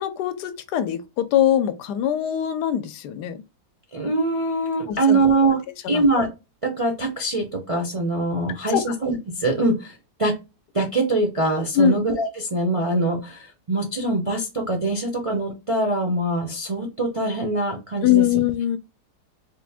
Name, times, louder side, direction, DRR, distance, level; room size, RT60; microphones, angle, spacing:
voice 1, 0.0-3.4 4.9-5.3 5.8-6.1 8.7-8.8 11.7-12.0 18.0-18.8, left 10 dB, 75° left, 1.1 m, -22 dB
voice 2, 3.9-5.6 5.9-6.3 6.6-10.3 10.7-18.2, right 2 dB, 40° right, 0.4 m, -23 dB
3.7 x 2.5 x 3.4 m
omnidirectional pair, 1.8 m